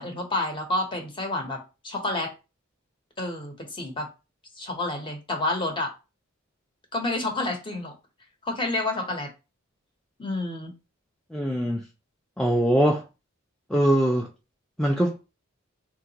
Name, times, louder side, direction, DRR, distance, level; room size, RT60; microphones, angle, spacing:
voice 1, 0.0-2.3 3.2-4.1 4.6-5.9 6.9-7.9 8.4-9.3 10.2-10.7, left 2 dB, 25° left, 0.8 m, -29 dB
voice 2, 11.3-11.8 12.4-13.0 13.7-14.3 14.8-15.2, equal, 5° left, 0.3 m, -22 dB
3.7 x 2.3 x 2.8 m
head